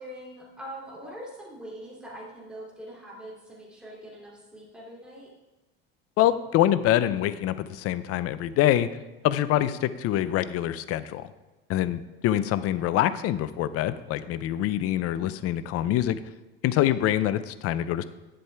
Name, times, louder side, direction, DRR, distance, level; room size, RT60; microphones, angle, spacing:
voice 1, 0.0-5.3, equal, 5° right, -5 dB, 2.8 m, -43 dB
voice 2, 6.2-8.9 9.2-11.2 11.7-16.2 16.6-18.0, left 12 dB, 50° left, 14 dB, 0.6 m, -25 dB
10.0 x 7.7 x 3.4 m, 1.1 s
supercardioid pair, 100°, 30 cm